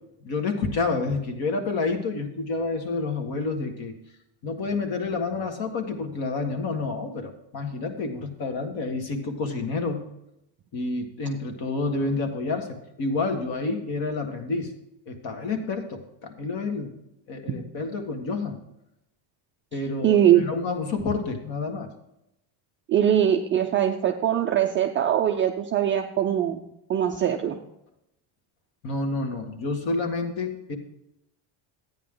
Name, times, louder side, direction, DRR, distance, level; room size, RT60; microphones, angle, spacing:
voice 1, 0.2-3.9 4.4-10.0 10.7-14.7 15.1-16.9 17.3-18.6 19.7-21.9 28.8-30.8, left 3 dB, 45° left, 5 dB, 1.7 m, -29 dB
voice 2, 20.0-20.5 22.9-27.6, right 10 dB, 30° right, 2 dB, 0.3 m, -22 dB
13.0 x 9.5 x 3.8 m, 0.84 s
cardioid pair, 170°, 50 cm